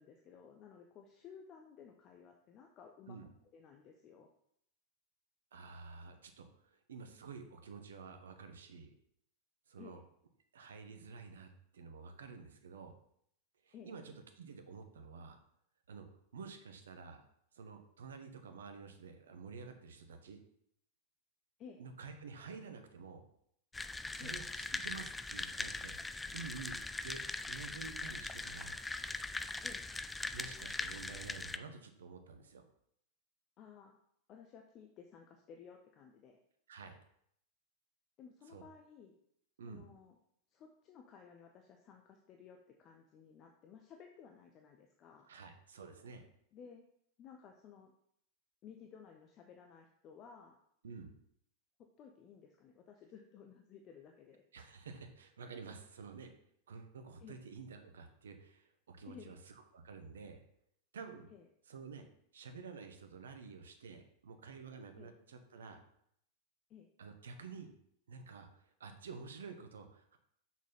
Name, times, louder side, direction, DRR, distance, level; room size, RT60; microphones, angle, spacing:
voice 1, 0.0-3.2 3.5-4.3 9.8-10.0 13.7-13.9 21.6-21.8 24.2-24.4 29.6-29.8 33.6-34.0 34.3-36.4 38.2-39.1 39.7-40.1 40.5-45.3 46.5-46.8 47.2-47.9 48.6-50.6 52.0-54.4 57.2-57.4 59.1-59.4 61.3-61.5 64.9-65.1 66.7-66.9, left 7 dB, 35° left, 3 dB, 0.9 m, -56 dB
voice 2, 5.5-8.9 9.7-10.0 10.5-12.9 13.6-15.4 15.9-16.1 16.3-17.2 17.5-20.4 21.8-23.2 24.1-28.8 30.3-32.7 36.7-37.0 38.5-38.6 39.6-39.8 45.3-46.2 50.8-51.2 54.5-56.3 56.7-60.4 60.9-61.3 61.7-62.1 62.3-65.8 67.0-67.7 68.1-70.2, right 5 dB, 65° right, 7 dB, 1.2 m, -50 dB
sound 1, 23.7-31.6, left 3 dB, 10° left, 0.4 m, -41 dB
6.6 x 6.3 x 5.6 m, 0.70 s
figure-of-eight pair, 90°, 0 cm